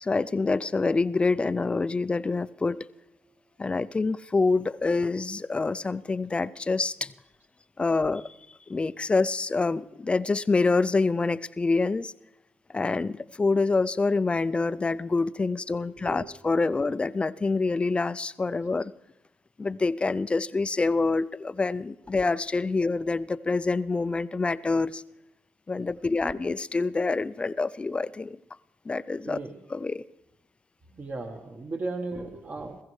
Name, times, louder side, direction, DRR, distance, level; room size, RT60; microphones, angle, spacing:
voice 1, 0.0-2.8 3.6-7.1 7.8-8.3 8.7-12.1 12.7-18.9 19.6-25.0 25.7-28.4 28.9-29.4 29.7-30.0, left 3 dB, 25° left, 16 dB, 0.4 m, -26 dB
voice 2, 15.8-16.2 29.3-29.6 30.9-32.8, right 3 dB, 40° right, 3 dB, 1.2 m, -36 dB
20.5 x 15.0 x 3.2 m, 0.89 s
cardioid pair, 85°, 5 cm